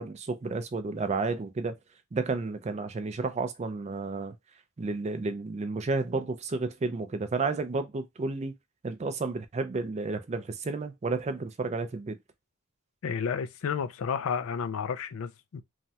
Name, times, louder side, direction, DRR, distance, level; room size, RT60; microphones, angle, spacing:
voice 1, 0.0-1.8 2.1-4.3 4.8-8.5 8.8-12.2, right 3 dB, 30° right, 0.4 m, -31 dB
voice 2, 13.0-15.6, left 6 dB, 75° left, 0.4 m, -31 dB
3.1 x 2.2 x 2.7 m
head